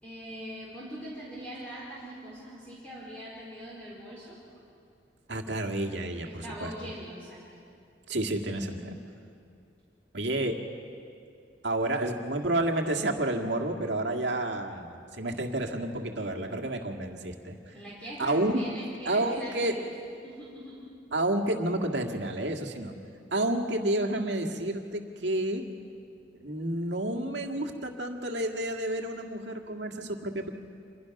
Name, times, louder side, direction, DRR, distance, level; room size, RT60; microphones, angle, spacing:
voice 1, 0.0-4.4 6.2-7.6 17.7-19.9 20.2-20.8, right 1 dB, 10° left, -7 dB, 4.4 m, -42 dB
voice 2, 5.3-6.7 8.1-9.0 10.1-10.6 11.6-17.6 18.2-18.5 19.1-19.7 21.1-22.9 23.3-25.6 26.4-30.5, right 1 dB, 70° right, 2 dB, 2.0 m, -30 dB
27.5 x 22.5 x 6.0 m, 2.4 s
head